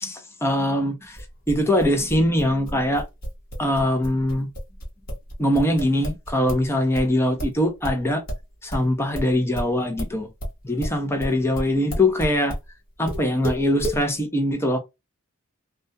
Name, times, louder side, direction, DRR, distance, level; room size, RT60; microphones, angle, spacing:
voice 1, 0.0-1.2 1.5-3.0 3.6-4.5 5.4-8.2 8.6-10.3 10.6-12.5 13.0-14.8, left 1 dB, 10° left, 0.6 m, -22 dB
sound 1, 1.1-6.7 6.9-12.7 13.1-14.0, equal, 45° left, 1.1 m, -31 dB
2.4 x 2.2 x 2.6 m
head